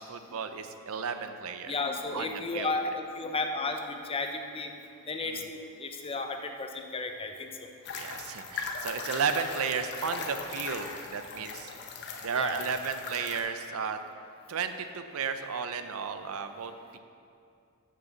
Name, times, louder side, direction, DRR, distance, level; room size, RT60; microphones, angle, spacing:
voice 1, 0.0-1.8 2.1-2.7 7.9-11.7 12.2-14.0 14.5-17.0, right 6 dB, 70° right, 9 dB, 0.5 m, -33 dB
voice 2, 1.7-4.7 5.1-7.5 12.3-12.6, left 3 dB, 25° left, 5 dB, 0.6 m, -33 dB
sound 1, 7.8-13.4, left 4 dB, 50° left, 0.9 m, -39 dB
6.7 x 6.7 x 7.2 m, 2.5 s
head